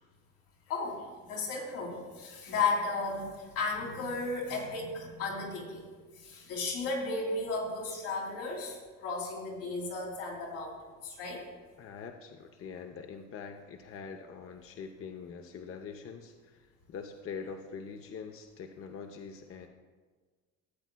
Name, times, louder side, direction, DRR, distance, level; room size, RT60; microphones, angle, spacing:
voice 1, 0.7-10.8 11.0-11.5, left 3 dB, 85° left, -4 dB, 2.9 m, -34 dB
voice 2, 11.8-19.7, left 6 dB, 45° left, 4 dB, 0.7 m, -44 dB
15.0 x 8.0 x 2.2 m, 1.4 s
supercardioid pair, 75°, 31 cm